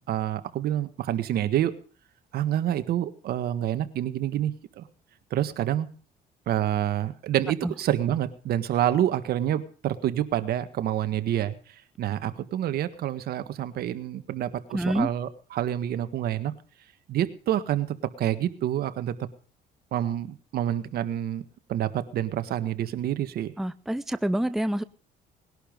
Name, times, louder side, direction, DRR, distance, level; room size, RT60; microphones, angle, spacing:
voice 1, 0.1-1.7 2.3-4.9 5.3-5.9 6.5-11.5 12.0-16.5 17.1-17.9 18.2-19.3 19.9-21.4 21.7-23.5, right 11 dB, 65° right, 1.7 m, -27 dB
voice 2, 14.7-15.1 23.6-24.8, right 1 dB, ahead, 0.7 m, -27 dB
20.0 x 11.5 x 5.3 m
cardioid pair, 110°, 17 cm